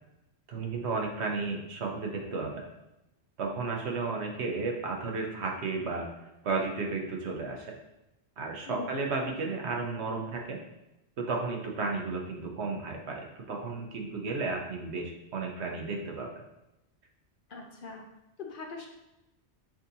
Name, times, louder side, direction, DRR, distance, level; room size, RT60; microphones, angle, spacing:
voice 1, 0.5-2.7 3.4-6.1 6.4-7.8 8.4-10.6 11.2-16.3, right 3 dB, 80° right, 1 dB, 1.1 m, -33 dB
voice 2, 17.5-18.1 18.4-18.9, left 4 dB, 55° left, 2 dB, 0.8 m, -41 dB
7.1 x 2.7 x 2.7 m, 0.90 s
omnidirectional pair, 1.1 m